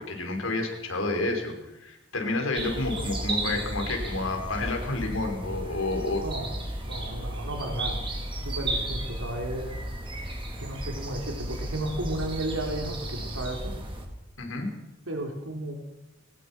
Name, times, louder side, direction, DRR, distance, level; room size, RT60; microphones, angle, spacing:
voice 1, 0.0-6.2 14.4-14.7, left 2 dB, 80° left, 3 dB, 5.6 m, -30 dB
sound 1, 2.5-14.0, right 1 dB, 25° right, 3.9 m, -34 dB
voice 2, 6.2-6.6 6.8-8.0 8.4-9.8 10.6-13.7 15.1-15.7, right 1 dB, 85° right, 1 dB, 3.7 m, -33 dB
23.0 x 20.0 x 6.2 m, 0.92 s
head